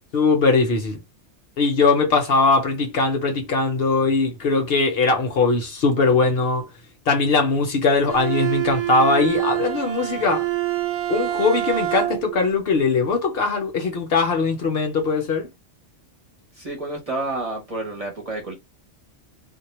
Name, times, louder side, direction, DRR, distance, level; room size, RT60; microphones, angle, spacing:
voice 1, 0.1-1.0 1.6-6.7 7.1-10.4 11.1-15.5, left 4 dB, 60° left, 0.9 m, -20 dB
Bowed string instrument, 8.1-12.4, right 14 dB, 85° right, 0.9 m, -26 dB
voice 2, 16.5-18.6, right 2 dB, 35° right, 0.8 m, -29 dB
2.2 x 2.1 x 3.0 m
omnidirectional pair, 1.2 m